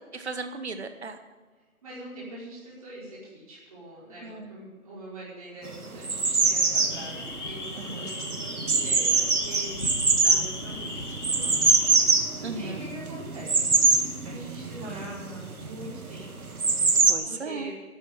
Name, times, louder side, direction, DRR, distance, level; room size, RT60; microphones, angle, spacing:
voice 1, 0.1-1.2 4.2-4.6 7.8-8.1 10.2-10.5 12.4-12.9 14.8-15.1 17.1-17.7, right 4 dB, 50° right, 9 dB, 1.3 m, -36 dB
voice 2, 1.8-13.9 14.2-17.7, right 1 dB, 25° right, -7 dB, 5.2 m, -43 dB
sound 1, 5.7-17.1, right 4 dB, 80° right, 2.0 m, -24 dB
sound 2, 6.9-11.9, left 3 dB, 55° left, 2.8 m, -38 dB
12.5 x 8.8 x 9.4 m, 1.3 s
figure-of-eight pair, 175°, 43 cm